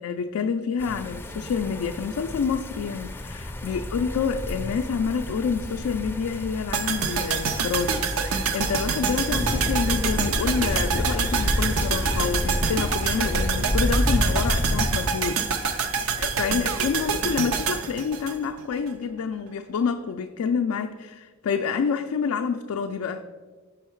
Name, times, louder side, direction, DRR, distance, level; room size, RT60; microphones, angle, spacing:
voice 1, 0.0-23.2, left 6 dB, 90° left, 5 dB, 0.3 m, -28 dB
sound 1, 0.8-15.1, left 1 dB, 10° left, 0.4 m, -29 dB
sound 2, 6.7-18.9 19.2-19.3, right 6 dB, 70° right, 0.5 m, -27 dB
5.6 x 5.5 x 4.4 m, 1.4 s
head